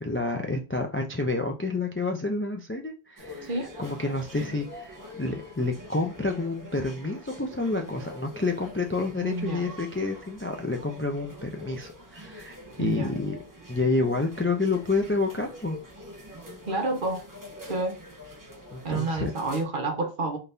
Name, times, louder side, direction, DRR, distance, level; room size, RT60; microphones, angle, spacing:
voice 1, 0.0-3.5 3.8-13.4 13.7-15.8 18.7-19.3, left 3 dB, 20° left, 0.3 m, -29 dB
sound 1, 3.2-19.7, left 1 dB, 20° right, 0.8 m, -45 dB
voice 2, 9.2-9.7 12.8-13.1 16.7-17.2 17.7-18.0 18.8-20.4, right 2 dB, 55° right, 1.1 m, -29 dB
4.0 x 2.6 x 3.3 m
omnidirectional pair, 1.1 m